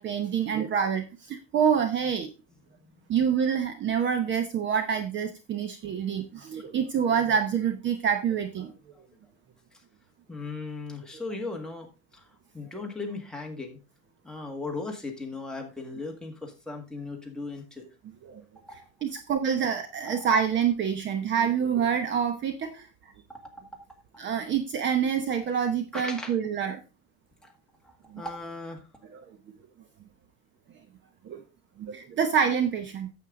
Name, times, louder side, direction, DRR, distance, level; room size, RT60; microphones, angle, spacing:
voice 1, 0.0-2.3 3.1-8.7 18.2-18.4 19.0-22.9 24.2-26.8 29.1-29.2 31.3-31.4 31.8-33.1, right 7 dB, 35° right, 8 dB, 0.9 m, -27 dB
voice 2, 10.3-12.2 12.5-13.8 14.2-17.8 18.7-18.8 20.0-20.3 23.3-23.4 24.1-24.2 25.9-26.3 27.4-27.5 28.2-28.8, left 3 dB, ahead, 0 dB, 1.7 m, -37 dB
9.0 x 7.6 x 3.7 m, 0.29 s
cardioid pair, 155°, 33 cm